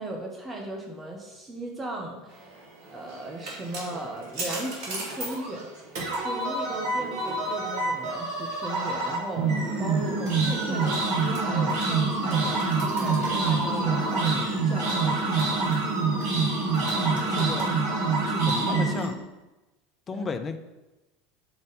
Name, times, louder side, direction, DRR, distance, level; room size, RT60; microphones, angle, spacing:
voice 1, 0.0-2.5 2.9-5.7 6.1-15.4 18.3-18.9 20.1-20.3, right 2 dB, 20° right, 0 dB, 1.0 m, -37 dB
sound 1, 2.8-19.1, right 3 dB, 55° right, 1.6 m, -26 dB
voice 2, 17.0-17.7 18.3-19.1 20.1-20.6, left 5 dB, 25° left, 8 dB, 0.5 m, -34 dB
5.1 x 3.9 x 5.4 m, 1.1 s
figure-of-eight pair, 75°, 0 cm